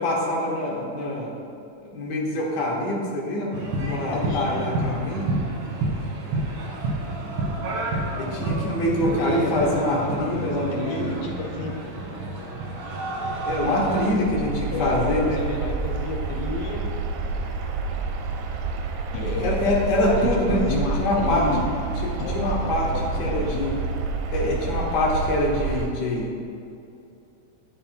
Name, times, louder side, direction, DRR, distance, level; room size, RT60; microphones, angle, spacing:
voice 1, 0.0-1.4 1.9-3.6 3.9-5.3 8.2-11.1 13.4-15.4 19.2-20.6 21.0-21.4 22.3-22.9 23.2-23.8 24.3-26.3, left 1 dB, 55° left, -3 dB, 1.2 m, -25 dB
sound 1, 3.5-14.1, right 2 dB, 65° right, 1.2 m, -29 dB
voice 2, 3.8-4.7 9.1-11.7 14.7-16.8 19.1-19.7 20.0-21.8 22.2-23.8, left 4 dB, 75° left, 0 dB, 1.9 m, -32 dB
sound 2, 13.2-25.9, right 4 dB, 80° right, 1.7 m, -29 dB
10.5 x 4.3 x 4.4 m, 2.5 s
omnidirectional pair, 3.7 m